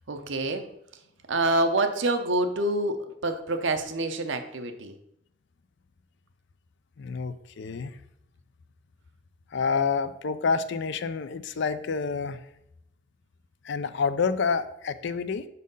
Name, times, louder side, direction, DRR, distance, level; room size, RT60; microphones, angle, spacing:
voice 1, 0.1-0.6 1.3-4.9, right 2 dB, 70° right, 7 dB, 0.8 m, -27 dB
voice 2, 7.0-8.0 9.5-12.4 13.6-15.5, left 5 dB, 65° left, 12 dB, 0.5 m, -28 dB
6.2 x 4.2 x 5.4 m, 0.78 s
head